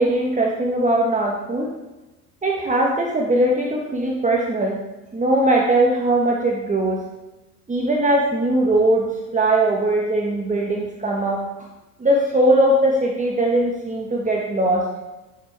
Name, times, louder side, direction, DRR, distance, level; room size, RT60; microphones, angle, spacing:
voice 1, 0.0-1.7 2.4-4.8 5.1-7.0 7.7-11.4 12.0-14.9, right 1 dB, 15° right, -1 dB, 1.5 m, -20 dB
11.0 x 7.4 x 3.5 m, 1.1 s
hypercardioid pair, 70°, 44 cm